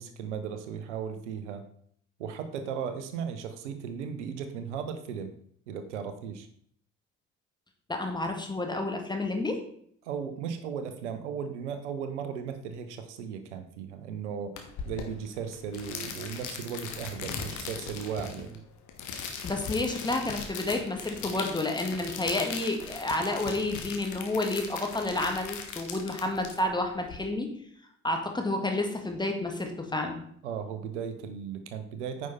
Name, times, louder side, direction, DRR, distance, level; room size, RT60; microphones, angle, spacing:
voice 1, 0.0-1.6 2.2-5.3 5.7-6.5 10.0-14.6 14.9-18.6 30.4-32.3, right 7 dB, 70° right, 9 dB, 0.8 m, -36 dB
voice 2, 7.9-9.6 19.4-27.5 28.0-30.2, left 2 dB, 10° left, 3 dB, 1.8 m, -30 dB
sound 1, 14.6-27.2, left 6 dB, 55° left, 1.4 m, -39 dB
9.4 x 5.5 x 4.1 m, 0.64 s
figure-of-eight pair, 50°, 36 cm